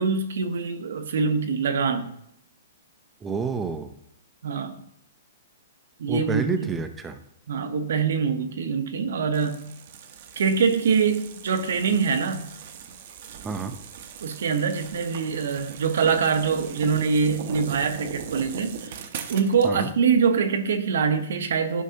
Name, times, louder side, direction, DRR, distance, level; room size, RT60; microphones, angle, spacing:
voice 1, 0.0-2.1 4.4-4.7 6.0-6.8 7.5-9.6 10.4-12.5 14.2-19.0 19.3-21.8, right 5 dB, 70° right, 9 dB, 0.9 m, -24 dB
voice 2, 3.2-3.9 6.1-7.2 13.4-13.7 19.6-19.9, right 5 dB, 10° right, 9 dB, 0.5 m, -29 dB
sound 1, 9.3-19.7, right 7 dB, 50° right, 0.8 m, -39 dB
11.5 x 5.4 x 2.8 m, 0.77 s
hypercardioid pair, 155°, 0 cm